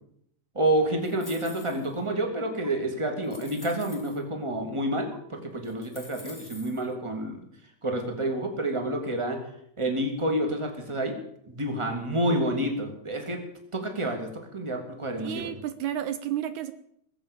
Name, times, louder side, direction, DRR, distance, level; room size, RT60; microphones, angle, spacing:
voice 1, 0.5-7.4 7.8-9.4 9.8-11.2 11.4-13.4 13.7-15.5, right 1 dB, 10° right, 3 dB, 2.5 m, -29 dB
sound 1, 1.0-2.0 2.6-2.7 3.2-4.2 5.1-5.2 5.6-6.9, left 1 dB, 10° left, 1.4 m, -48 dB
voice 2, 15.2-16.7, right 11 dB, 75° right, 12 dB, 2.1 m, -31 dB
21.0 x 7.9 x 8.7 m, 0.72 s
omnidirectional pair, 3.5 m